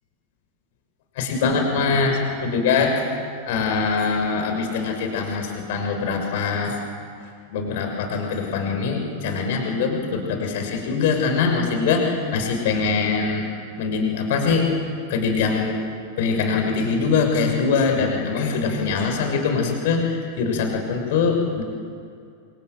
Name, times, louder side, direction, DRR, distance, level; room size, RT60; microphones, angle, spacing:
voice 1, 1.2-3.1 3.5-6.8 7.5-13.4 13.8-14.7 15.1-15.7 16.2-21.6, left 5 dB, 55° left, 3 dB, 6.1 m, -23 dB
27.0 x 27.0 x 7.7 m, 2.4 s
figure-of-eight pair, 90°, 0 cm